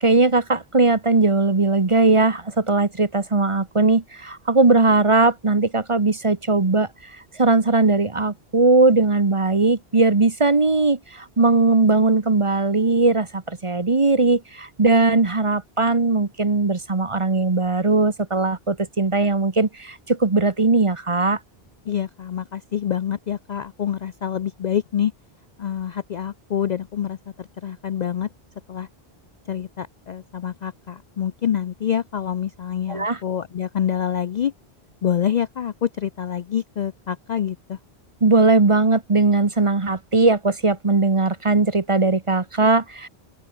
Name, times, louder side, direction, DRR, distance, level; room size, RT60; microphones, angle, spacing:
voice 1, 0.0-21.4 32.9-33.2 38.2-43.1, right 3 dB, 30° right, 1.2 m, -19 dB
voice 2, 21.9-25.1 25.6-28.3 28.7-28.9 29.5-34.5 35.0-37.8, left 9 dB, 55° left, 0.5 m, -26 dB
open air
omnidirectional pair, 1.1 m